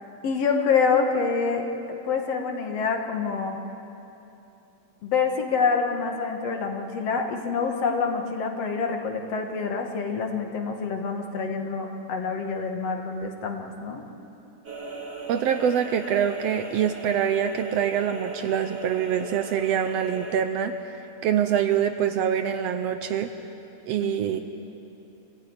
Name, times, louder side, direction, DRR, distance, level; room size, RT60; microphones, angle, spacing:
voice 1, 0.2-3.6 5.0-14.0 24.0-24.2, left 5 dB, 60° left, 4 dB, 2.5 m, -26 dB
sound 1, 14.6-20.4, right 3 dB, 35° right, 2.8 m, -38 dB
voice 2, 15.3-20.7 21.2-23.3 23.9-24.4, right 9 dB, 70° right, 8 dB, 1.7 m, -25 dB
25.5 x 15.5 x 9.6 m, 2.9 s
omnidirectional pair, 3.3 m